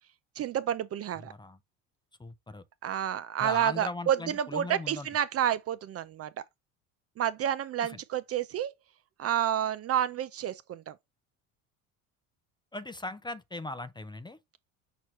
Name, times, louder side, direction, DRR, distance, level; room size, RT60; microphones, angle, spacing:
voice 1, 0.4-1.3 2.8-6.3 7.2-8.7 9.2-10.9, right 10 dB, 40° right, 0.5 m, -29 dB
voice 2, 1.2-1.6 2.2-2.6 3.4-5.1 7.8-8.0 12.7-14.4, left 2 dB, 10° left, 0.6 m, -39 dB
6.1 x 2.9 x 3.0 m
hypercardioid pair, 75°, 40 cm